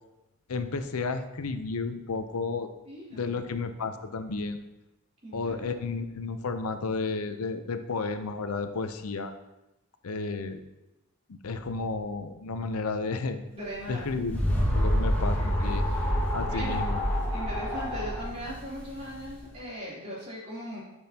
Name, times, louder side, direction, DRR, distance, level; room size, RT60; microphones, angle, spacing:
voice 1, 0.5-2.7 3.1-4.6 5.3-9.3 10.0-10.6 11.4-13.4 13.9-14.4 14.7-15.8 16.3-17.0, left 4 dB, 85° left, 9 dB, 0.6 m, -32 dB
voice 2, 2.8-3.4 5.2-5.7 13.5-14.0 15.4-16.1 16.5-16.9 17.3-20.8, equal, 30° right, -7 dB, 3.1 m, -39 dB
sound 1, 13.8-19.4, equal, 10° left, 1.6 m, -27 dB
12.0 x 6.2 x 2.8 m, 0.96 s
head